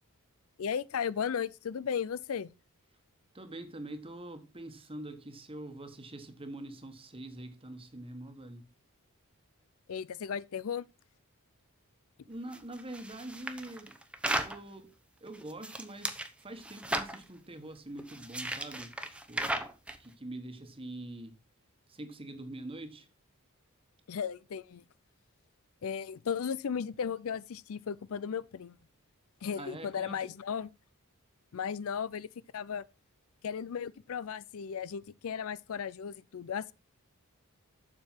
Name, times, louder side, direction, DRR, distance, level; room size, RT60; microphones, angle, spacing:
voice 1, 0.6-2.5 9.9-10.9 24.1-24.8 25.8-28.8 29.4-30.7 31.5-32.8 33.4-36.7, left 7 dB, 65° left, 0.4 m, -35 dB
voice 2, 3.3-8.7 12.3-14.0 14.3-14.9 15.2-19.0 19.3-19.7 20.0-21.4 21.9-23.1 29.6-30.2, right 1 dB, 25° right, 1.4 m, -44 dB
sound 1, 12.5-14.6 15.3-16.3 16.6-17.2 18.0-20.0, right 1 dB, 5° right, 0.8 m, -35 dB
7.4 x 6.6 x 5.8 m
head